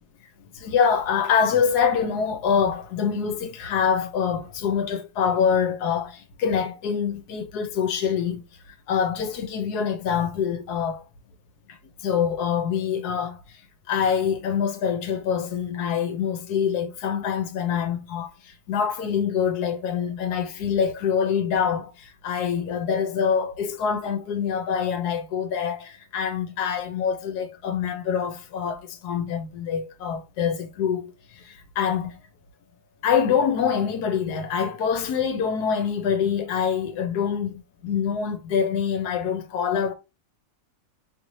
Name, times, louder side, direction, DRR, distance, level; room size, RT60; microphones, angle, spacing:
voice 1, 0.5-8.4 8.9-11.0 11.7-13.6 13.9-32.2 33.0-39.9, left 7 dB, 70° left, 1.2 m, -25 dB
5.5 x 3.1 x 2.7 m
omnidirectional pair, 2.0 m